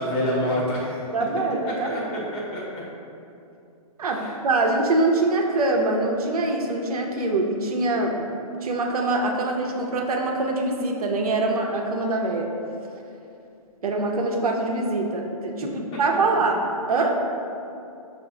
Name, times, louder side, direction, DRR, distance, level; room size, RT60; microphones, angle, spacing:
voice 1, 0.0-1.3 1.7-2.8 4.0-4.4 15.9-16.2, equal, 25° left, -5 dB, 1.0 m, -28 dB
voice 2, 1.1-2.1 4.0-8.3 8.6-12.5 13.8-16.6 16.9-17.2, right 2 dB, 75° right, 2 dB, 0.6 m, -24 dB
4.6 x 2.4 x 3.7 m, 2.6 s
hypercardioid pair, 135°, 19 cm